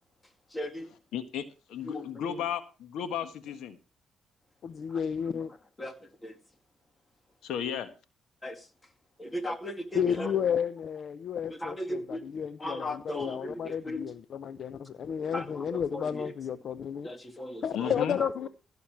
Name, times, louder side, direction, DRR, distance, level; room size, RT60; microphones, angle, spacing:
voice 1, 0.5-0.9 1.8-2.4 4.9-5.0 5.8-6.4 8.4-8.7 9.2-10.3 11.5-12.2 12.6-14.1 15.3-16.3 17.0-17.9, left 1 dB, 20° left, 2.2 m, -37 dB
voice 2, 1.1-1.4 1.7-3.8 7.4-7.9 17.7-18.2, left 9 dB, 85° left, 1.4 m, -34 dB
voice 3, 4.6-5.5 9.9-17.1 17.6-18.5, left 8 dB, 60° left, 0.7 m, -32 dB
15.5 x 7.1 x 4.6 m
cardioid pair, 90°, 0 cm